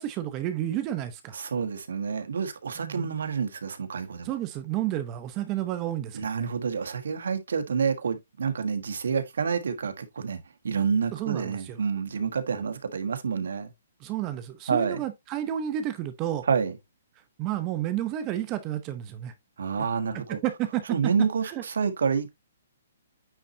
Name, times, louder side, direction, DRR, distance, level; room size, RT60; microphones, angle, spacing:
voice 1, 0.0-1.4 2.8-3.1 4.2-6.5 11.1-11.8 14.0-16.5 17.4-19.3 20.3-20.8 21.4-21.6, right 12 dB, 25° right, 0.8 m, -31 dB
voice 2, 1.3-4.3 6.1-10.4 10.6-13.7 14.7-15.0 16.4-16.7 19.6-20.4 20.9-22.3, right 6 dB, 80° right, 1.3 m, -28 dB
9.0 x 4.1 x 2.7 m
hypercardioid pair, 155°, 0 cm